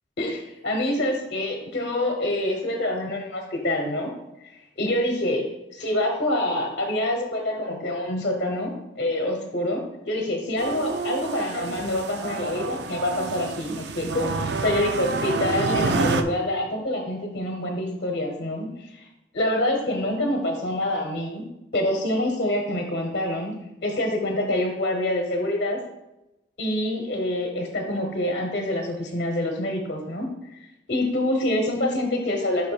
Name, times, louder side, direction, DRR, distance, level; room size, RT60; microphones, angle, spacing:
voice 1, 0.2-4.1 4.8-19.1 19.3-21.4 21.7-23.5 23.8-25.8 26.6-30.3 30.9-32.7, left 1 dB, 65° left, 1 dB, 1.0 m, -26 dB
sound 1, 10.6-16.2, right 4 dB, 75° right, 0.5 m, -28 dB
8.4 x 5.6 x 2.4 m, 0.92 s
head